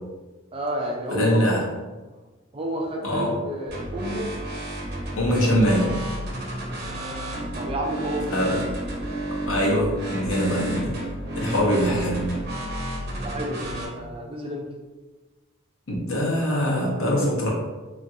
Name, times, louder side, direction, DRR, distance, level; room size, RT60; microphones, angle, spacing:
voice 1, 0.5-1.5 2.5-4.3 6.9-8.5 9.0-9.2 13.2-14.7, equal, 25° right, 0 dB, 0.4 m, -31 dB
voice 2, 1.1-1.6 3.0-3.3 5.2-6.0 8.3-8.6 9.5-11.0 11.4-12.3 15.9-17.5, equal, 75° left, -3 dB, 0.8 m, -23 dB
sound 1, 3.7-13.9, right 1 dB, 50° right, 0.8 m, -32 dB
2.9 x 2.4 x 2.7 m, 1.2 s
head